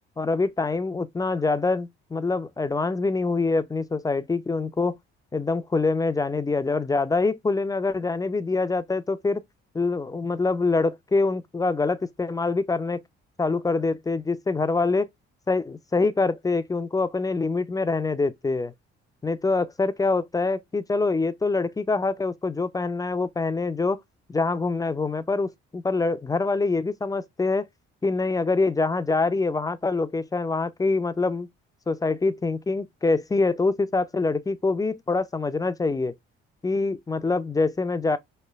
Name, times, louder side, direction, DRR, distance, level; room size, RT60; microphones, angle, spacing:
voice 1, 0.2-5.0 5.3-9.4 9.7-13.0 13.4-15.1 15.5-18.7 19.2-24.0 24.3-27.7 28.0-31.5 31.9-36.1 36.6-38.2, left 3 dB, 10° left, 0.3 m, -25 dB
3.1 x 2.1 x 2.2 m
hypercardioid pair, 50°, 30 cm